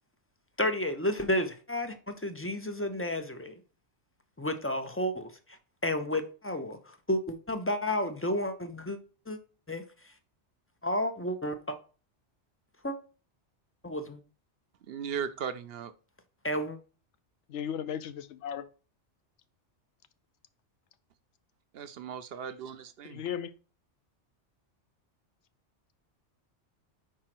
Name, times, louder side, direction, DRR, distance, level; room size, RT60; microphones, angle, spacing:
voice 1, 0.6-3.5 4.4-5.3 5.8-9.0 9.3-9.4 9.7-9.8 10.8-11.8 12.8-13.0 13.8-14.2 16.4-16.8, left 1 dB, 20° left, 0.3 m, -31 dB
voice 2, 14.9-15.9 21.7-23.2, right 7 dB, 65° right, 0.7 m, -37 dB
voice 3, 17.5-18.7 23.0-23.5, left 9 dB, 75° left, 0.9 m, -36 dB
4.9 x 4.6 x 5.9 m
omnidirectional pair, 1.2 m